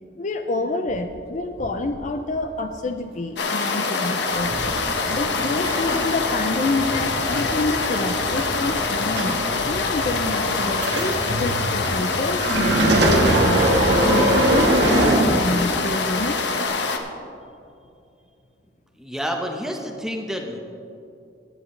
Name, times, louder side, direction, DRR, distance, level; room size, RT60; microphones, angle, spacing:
voice 1, 0.2-4.6 5.1-13.7 14.1-16.5, left 2 dB, 40° left, 7 dB, 0.5 m, -28 dB
Train, 0.9-11.3, right 1 dB, 35° right, 1.1 m, -41 dB
sound 1, 3.4-17.0, left 4 dB, 70° left, 1.0 m, -25 dB
sound 2, 5.0-15.9 16.6-16.7, right 1 dB, 65° right, 1.5 m, -23 dB
voice 2, 19.0-20.6, equal, 5° right, 2 dB, 1.0 m, -29 dB
16.5 x 9.5 x 3.3 m, 2.6 s
head